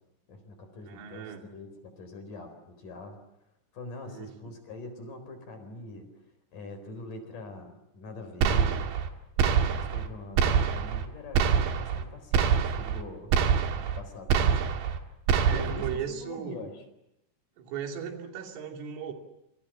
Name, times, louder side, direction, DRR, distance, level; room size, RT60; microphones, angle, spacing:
voice 1, 0.3-3.2 3.7-6.1 6.5-8.8 9.4-13.3 13.7-14.8 15.5-16.8, left 2 dB, 45° left, 8 dB, 5.5 m, -43 dB
voice 2, 0.8-1.5 4.0-4.3 14.5-14.9 15.5-16.7 17.6-19.1, right 7 dB, 90° right, 3 dB, 5.4 m, -37 dB
sound 1, 8.4-9.1 9.4-10.1 10.4-11.1 11.4-12.0 12.3-13.0 13.3-14.0 14.3-15.0 15.3-16.0, right 7 dB, 70° right, 3.9 m, -25 dB
28.0 x 25.5 x 7.5 m, 0.85 s
omnidirectional pair, 5.5 m